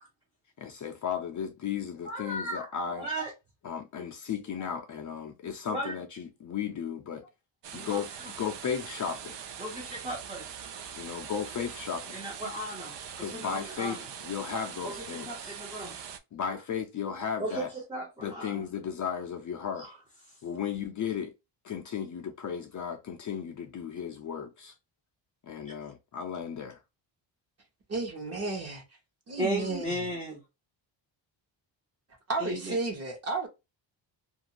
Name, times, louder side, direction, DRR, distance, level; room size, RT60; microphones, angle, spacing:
voice 1, 0.6-3.1 3.6-7.2 7.7-9.4 11.0-12.5 13.2-15.5 16.3-17.7 18.2-19.9 20.4-21.3 21.6-24.7 25.4-26.8, left 7 dB, 40° left, 0.5 m, -35 dB
voice 2, 2.0-3.3 4.6-4.7 5.7-6.0 7.8-8.0 9.6-10.5 12.1-14.1 14.8-16.0 17.4-18.6 19.8-19.9 29.4-30.4 32.4-32.8, right 1 dB, 10° right, 0.6 m, -36 dB
sound 1, 7.6-16.2, right 8 dB, 60° right, 0.6 m, -42 dB
voice 3, 27.9-29.0 29.3-30.1 32.3-33.5, right 3 dB, 30° right, 1.0 m, -33 dB
2.5 x 2.4 x 2.8 m
cardioid pair, 155°, 47 cm